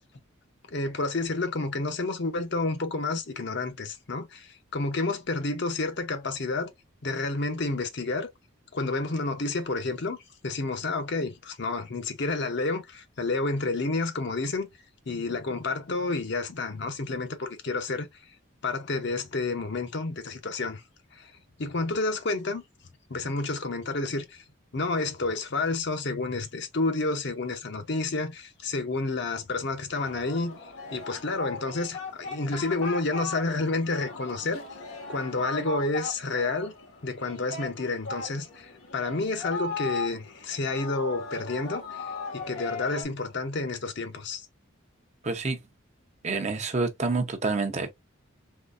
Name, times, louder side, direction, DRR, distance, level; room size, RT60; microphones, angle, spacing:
voice 1, 0.7-6.7 7.0-8.3 8.7-10.2 10.4-14.7 15.1-18.1 18.6-20.8 21.1-21.3 21.6-22.6 23.1-24.4 24.7-34.6 35.1-36.7 37.0-44.5, left 3 dB, 55° left, 0.8 m, -30 dB
Singing, 29.9-43.0, left 3 dB, 90° left, 1.8 m, -38 dB
voice 2, 45.2-45.6 46.2-47.9, right 3 dB, 35° right, 0.7 m, -28 dB
3.8 x 3.1 x 2.4 m
head